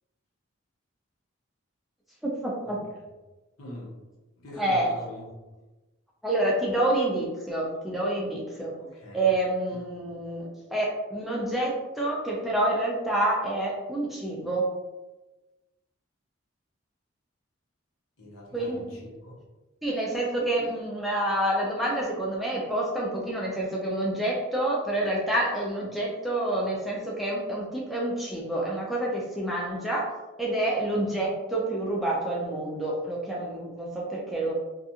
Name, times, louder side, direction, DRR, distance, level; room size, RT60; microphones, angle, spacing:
voice 1, 2.4-2.8 4.6-4.9 6.2-8.7 9.1-14.7 18.5-18.9 19.8-30.1 30.4-34.5, right 1 dB, ahead, -5 dB, 0.4 m, -28 dB
voice 2, 3.6-4.0 4.4-5.2 8.8-9.3 9.7-10.2 18.2-19.4, left 1 dB, 80° left, -4 dB, 0.9 m, -43 dB
2.4 x 2.4 x 2.7 m, 1.1 s
head